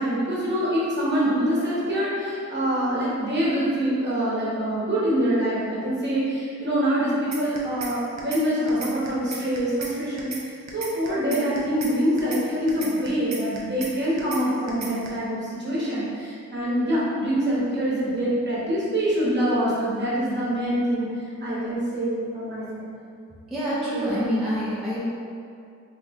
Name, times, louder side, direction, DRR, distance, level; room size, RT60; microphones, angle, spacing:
voice 1, 0.0-21.1 21.4-22.9 23.9-24.2, equal, 35° right, -9 dB, 1.2 m, -25 dB
sound 1, 7.3-7.9 8.2-8.4 8.7-9.9 10.2-10.4 10.7-11.9 12.2-12.4 12.7-13.9 14.2-14.4 14.7-15.1, right 4 dB, 60° right, 0.6 m, -35 dB
voice 2, 23.5-25.1, equal, ahead, -9 dB, 0.7 m, -26 dB
3.3 x 2.4 x 3.6 m, 2.4 s
cardioid pair, 80°, 31 cm